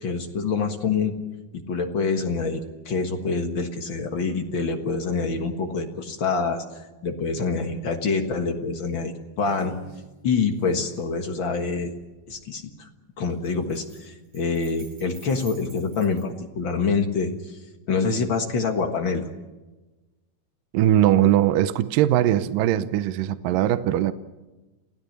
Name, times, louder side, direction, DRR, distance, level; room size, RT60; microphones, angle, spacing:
voice 1, 0.0-1.1 1.5-9.7 10.2-11.9 12.3-12.9 13.2-17.6 17.9-19.3, left 4 dB, 55° left, 5 dB, 1.4 m, -26 dB
Dangling keys, 9.5-10.0 10.5-12.4 13.2-16.2, right 4 dB, 50° right, 6.0 m, -47 dB
voice 2, 20.7-24.1, right 12 dB, 75° right, 12 dB, 2.2 m, -20 dB
29.5 x 16.5 x 6.6 m, 1.1 s
omnidirectional pair, 4.6 m